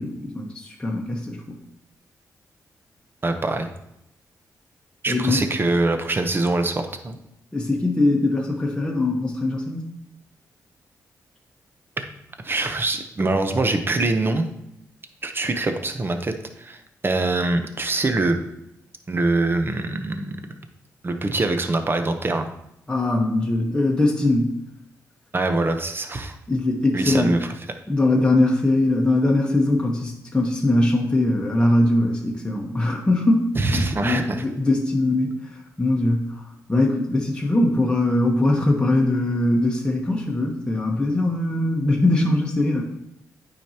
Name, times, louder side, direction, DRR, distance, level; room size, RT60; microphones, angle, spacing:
voice 1, 0.0-1.6 5.1-5.4 7.5-9.9 22.9-24.5 26.5-27.3 27.9-35.3 35.8-36.2 36.7-42.8, left 2 dB, 15° left, -2 dB, 1.2 m, -21 dB
voice 2, 3.2-3.7 5.0-7.2 12.0-12.1 12.4-14.4 15.2-16.3 16.6-16.8 17.0-18.4 19.1-20.4 21.0-22.5 25.3-26.4 26.9-27.5 33.6-34.4, right 2 dB, 35° right, 6 dB, 0.8 m, -23 dB
9.2 x 5.0 x 2.9 m, 0.82 s
cardioid pair, 70°, 6 cm